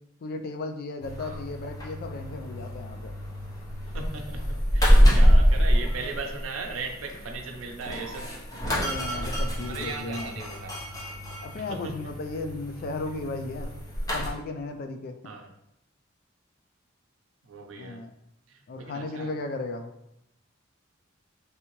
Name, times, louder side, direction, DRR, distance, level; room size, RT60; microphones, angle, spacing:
voice 1, 0.2-3.1 5.0-5.4 8.7-10.5 11.4-13.7 14.1-15.2 17.8-18.1 18.7-19.9, left 2 dB, 50° left, 6 dB, 0.3 m, -35 dB
sound 1, 1.0-14.3, equal, 15° left, 0.7 m, -26 dB
voice 2, 3.9-8.3 9.6-10.8 11.6-11.9 15.2-15.5 17.4-18.0 18.5-19.3, right 4 dB, 85° right, 3 dB, 0.5 m, -38 dB
3.3 x 2.7 x 3.0 m, 0.81 s
head